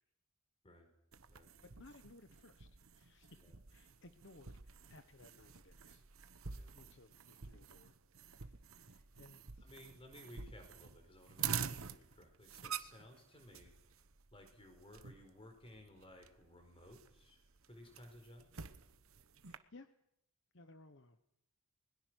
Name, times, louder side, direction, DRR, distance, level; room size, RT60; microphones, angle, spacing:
sound 1, 1.1-19.6, right 7 dB, 70° right, 1.1 m, -48 dB
voice 1, 1.6-6.0 6.4-7.9 8.3-9.7 13.5-13.6 19.4-19.9 20.5-21.2, left 2 dB, 55° left, 9 dB, 1.1 m, -61 dB
voice 2, 9.6-14.0 14.3-17.4 17.7-18.7, left 1 dB, 25° left, 5 dB, 4.7 m, -58 dB
29.5 x 21.5 x 6.4 m, 0.80 s
head